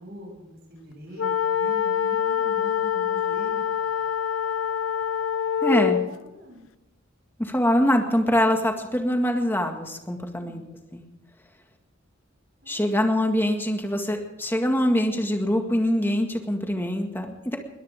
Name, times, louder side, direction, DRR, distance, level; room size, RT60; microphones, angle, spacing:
voice 1, 0.0-4.0 5.6-6.7 10.3-10.6 12.6-12.9, equal, 55° right, 1 dB, 6.9 m, -44 dB
sound 1, 1.2-6.1, left 8 dB, 75° left, 0.5 m, -25 dB
voice 2, 5.6-6.0 7.4-10.6 10.9-11.0 12.7-17.6, equal, 10° left, 3 dB, 1.9 m, -24 dB
22.0 x 18.0 x 3.6 m, 0.95 s
head